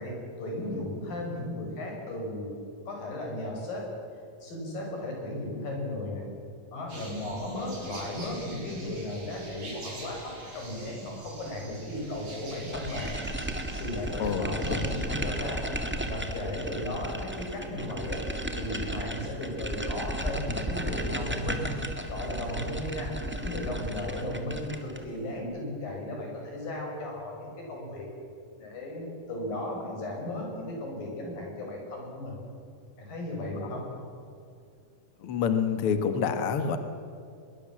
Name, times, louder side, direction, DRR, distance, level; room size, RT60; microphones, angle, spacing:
voice 1, 0.0-2.5 2.9-3.9 4.4-6.2 6.7-13.2 13.5-15.7 16.1-18.2 18.6-21.7 22.0-28.1 28.6-32.4 33.0-33.9, left 1 dB, 75° left, 0 dB, 8.0 m, -35 dB
sound 1, 6.9-15.0, right 1 dB, 55° right, 6.8 m, -45 dB
sound 2, 12.7-25.1, right 1 dB, 10° right, 0.5 m, -34 dB
voice 2, 14.2-14.9 33.6-33.8 35.2-36.8, left 6 dB, 55° left, 8 dB, 1.8 m, -28 dB
23.5 x 22.5 x 7.5 m, 2.4 s
omnidirectional pair, 4.0 m